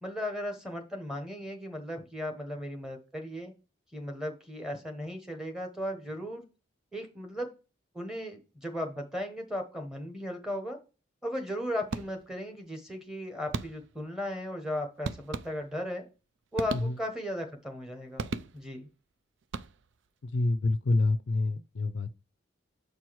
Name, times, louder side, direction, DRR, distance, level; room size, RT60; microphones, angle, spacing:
voice 1, 0.0-3.5 3.9-6.4 6.9-7.5 7.9-10.8 11.2-16.0 16.5-18.3 18.5-18.9, left 1 dB, 5° right, 1.1 m, -36 dB
sound 1, 11.9-12.5 13.5-14.1 15.0-15.9 16.5-17.3 18.2-18.9 19.4-20.1, right 4 dB, 70° right, 0.4 m, -37 dB
voice 2, 20.2-22.1, left 2 dB, 65° left, 0.5 m, -27 dB
6.8 x 4.6 x 4.6 m
head